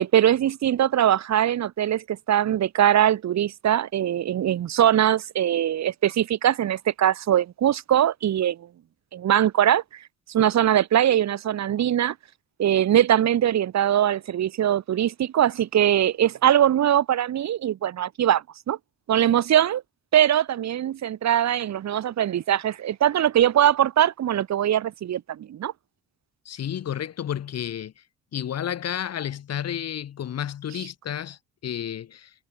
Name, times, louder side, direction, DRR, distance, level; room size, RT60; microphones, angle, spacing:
voice 1, 0.0-8.6 9.1-9.8 10.3-12.1 12.6-18.8 19.1-19.8 20.1-25.7, right 11 dB, 65° right, 2.0 m, -21 dB
voice 2, 26.5-28.0 28.3-32.3, left 10 dB, 55° left, 1.8 m, -31 dB
cardioid pair, 90°, 30 cm